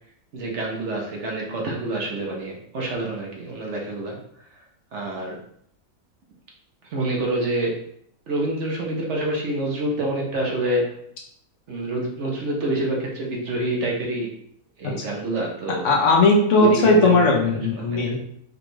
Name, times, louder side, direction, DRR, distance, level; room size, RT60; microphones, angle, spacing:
voice 1, 0.3-4.2 4.9-5.4 6.9-7.7 8.3-10.8 11.7-14.3 14.8-15.8 16.6-17.2 17.8-18.1, right 1 dB, 60° right, -1 dB, 1.0 m, -27 dB
voice 2, 15.8-18.2, left 2 dB, 60° left, -2 dB, 1.1 m, -17 dB
5.0 x 2.3 x 3.1 m, 0.69 s
omnidirectional pair, 1.5 m